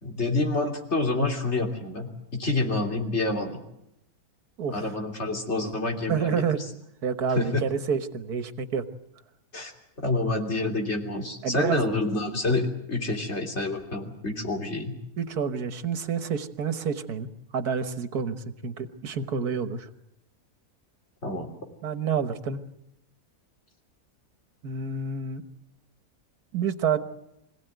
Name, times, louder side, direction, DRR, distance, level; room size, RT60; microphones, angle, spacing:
voice 1, 0.0-3.6 4.7-6.4 7.3-7.6 9.5-9.7 10.0-14.9 21.2-21.5, left 2 dB, 45° left, 2 dB, 3.5 m, -28 dB
voice 2, 6.1-6.6 7.0-8.8 11.4-11.9 15.2-17.3 17.5-19.9 21.8-22.6 24.6-25.4 26.5-27.0, right 6 dB, 80° right, 10 dB, 1.9 m, -28 dB
26.0 x 17.0 x 9.3 m, 0.84 s
omnidirectional pair, 1.6 m